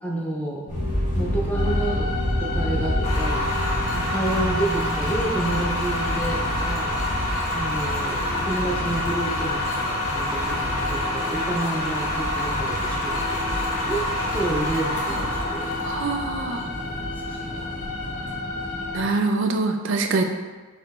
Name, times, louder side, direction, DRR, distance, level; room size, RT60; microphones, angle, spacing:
voice 1, 0.0-0.8 1.1-3.5 4.1-7.0 7.5-14.0 14.3-15.7 17.3-17.7, right 2 dB, 5° left, -2 dB, 0.5 m, -30 dB
sound 1, 0.7-19.0, left 1 dB, 35° left, 1.0 m, -30 dB
sound 2, 1.5-19.0, left 3 dB, 85° left, 0.7 m, -33 dB
sound 3, 3.0-18.0, equal, 65° left, 1.0 m, -29 dB
voice 2, 15.8-16.6 18.9-20.2, right 3 dB, 55° right, 5 dB, 0.4 m, -24 dB
4.3 x 2.8 x 4.1 m, 1.4 s
head